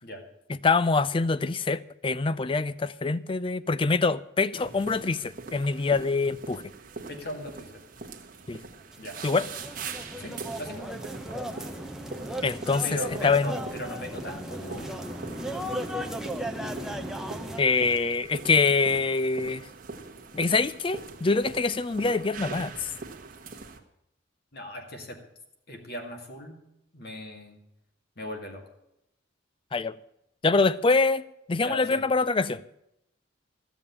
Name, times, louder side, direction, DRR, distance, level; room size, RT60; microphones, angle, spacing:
voice 1, 0.5-6.6 8.5-8.6 9.2-9.5 12.4-13.5 17.6-19.7 20.3-22.9 29.7-30.0 30.4-32.6, left 4 dB, 25° left, 0.4 m, -25 dB
sound 1, 4.6-23.8, right 4 dB, 45° right, 1.2 m, -42 dB
voice 2, 7.1-7.8 9.0-9.2 10.2-11.0 12.8-15.0 24.5-25.2 25.7-26.6 26.9-27.6 28.2-28.6 31.6-32.0, equal, 50° left, 2.1 m, -38 dB
sound 2, 8.9-17.6, equal, ahead, 0.7 m, -36 dB
13.5 x 7.1 x 8.5 m
head